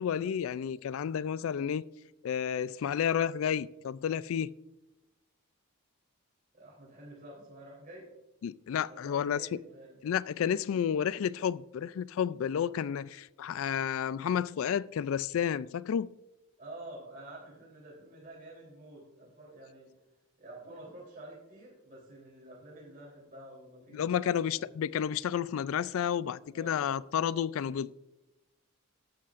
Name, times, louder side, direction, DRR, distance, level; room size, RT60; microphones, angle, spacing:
voice 1, 0.0-1.9 2.2-4.5 8.4-9.4 10.0-16.1 23.9-27.9, left 8 dB, 65° left, 0.3 m, -31 dB
voice 2, 6.5-8.1 8.9-10.0 16.6-19.9 20.4-24.6 26.5-26.9, right 1 dB, 40° right, 3.4 m, -49 dB
14.0 x 11.5 x 2.5 m
head